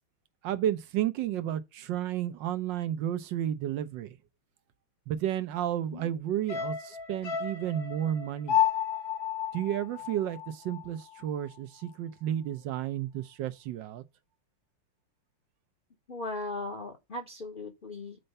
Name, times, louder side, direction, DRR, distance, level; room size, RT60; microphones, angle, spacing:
voice 1, 0.4-4.2 5.1-8.6 9.5-14.0, right 11 dB, 70° right, 1.3 m, -32 dB
sound 1, 6.5-10.9 11.2-11.3, left 9 dB, 55° left, 1.4 m, -31 dB
voice 2, 16.1-18.2, left 2 dB, 35° left, 0.8 m, -38 dB
7.7 x 4.5 x 5.4 m
omnidirectional pair, 2.2 m